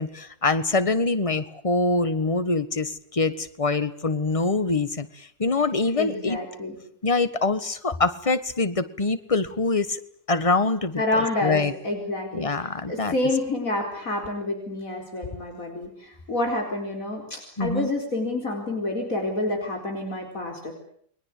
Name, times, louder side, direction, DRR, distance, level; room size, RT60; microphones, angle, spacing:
voice 1, 0.0-6.4 7.0-10.0 10.3-11.7 12.3-13.1 17.6-17.9, left 3 dB, 25° left, 13 dB, 1.5 m, -24 dB
voice 2, 6.0-6.8 11.0-12.5 12.9-20.8, left 2 dB, 75° left, 2 dB, 5.0 m, -28 dB
29.5 x 22.5 x 8.5 m, 0.64 s
omnidirectional pair, 1.5 m